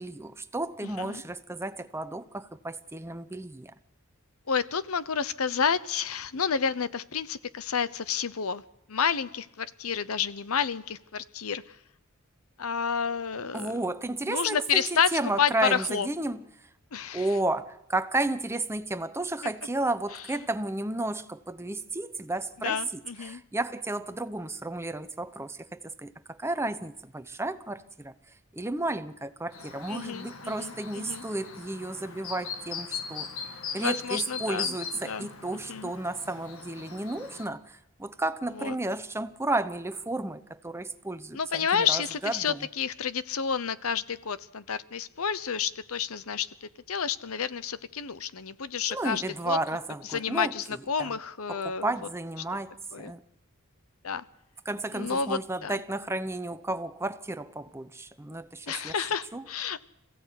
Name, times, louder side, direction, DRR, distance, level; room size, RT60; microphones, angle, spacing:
voice 1, 0.0-3.7 13.5-16.4 17.1-28.1 28.5-33.3 33.7-42.7 48.9-50.6 51.0-51.2 51.5-53.2 54.7-58.9 59.3-59.4, right 2 dB, 10° right, 0.8 m, -32 dB
voice 2, 0.8-1.2 4.5-8.6 8.9-11.8 12.6-13.8 14.3-16.1 16.9-17.3 22.6-23.4 29.9-31.2 33.7-34.7 35.0-35.3 35.7-35.9 38.6-38.7 41.3-49.6 50.1-51.9 52.9-53.1 54.0-54.2 54.9-55.8 58.7-59.8, left 6 dB, 90° left, 0.8 m, -30 dB
Chirp tweet, 29.5-37.5, left 6 dB, 70° left, 1.9 m, -39 dB
26.5 x 16.0 x 8.2 m
head